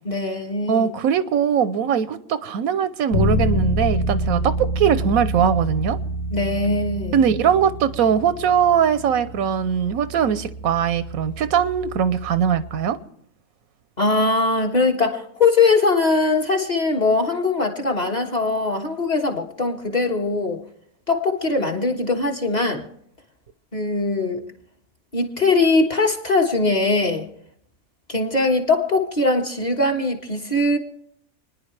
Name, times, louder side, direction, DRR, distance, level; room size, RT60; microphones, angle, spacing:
voice 1, 0.0-0.9 6.3-7.2 14.0-20.6 21.1-22.9 23.7-24.4 25.1-27.3 28.1-30.8, left 3 dB, 30° left, 1.6 m, -21 dB
voice 2, 0.7-6.0 7.1-13.0, right 8 dB, 85° right, 1.2 m, -21 dB
Bass guitar, 3.1-12.9, equal, 60° left, 1.5 m, -27 dB
29.5 x 10.5 x 3.3 m
omnidirectional pair, 1.5 m